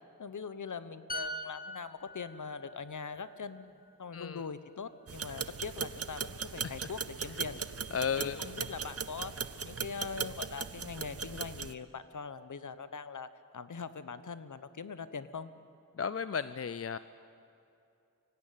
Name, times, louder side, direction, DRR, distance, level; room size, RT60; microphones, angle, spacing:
voice 1, 0.2-3.7 4.0-7.6 8.2-9.3 9.6-13.3 13.5-15.5, left 5 dB, 60° left, 13 dB, 1.0 m, -42 dB
sound 1, 1.1-4.7 5.0-5.3, equal, 25° left, 1.5 m, -44 dB
voice 2, 4.1-4.4 6.6-6.8 7.9-8.5 15.9-17.0, left 6 dB, 45° left, 14 dB, 0.5 m, -34 dB
sound 2, 5.1-11.7, right 6 dB, 40° right, 0.7 m, -39 dB
24.0 x 16.5 x 9.2 m, 2.7 s
wide cardioid pair, 80°, 35 cm